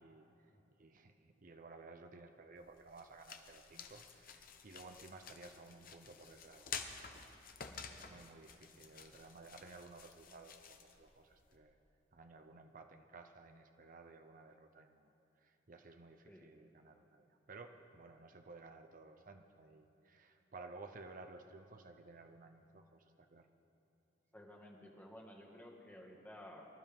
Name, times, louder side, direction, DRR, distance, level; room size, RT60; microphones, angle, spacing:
voice 1, 0.0-0.5 0.8-7.4 8.1-11.8 12.1-15.1 15.4-23.5, right 3 dB, 50° right, 5 dB, 0.7 m, -56 dB
sound 1, 2.6-11.6, left 6 dB, 50° left, 0.9 m, -51 dB
voice 2, 24.3-26.7, left 1 dB, 10° left, -1 dB, 1.8 m, -54 dB
24.5 x 12.0 x 3.6 m, 2.9 s
head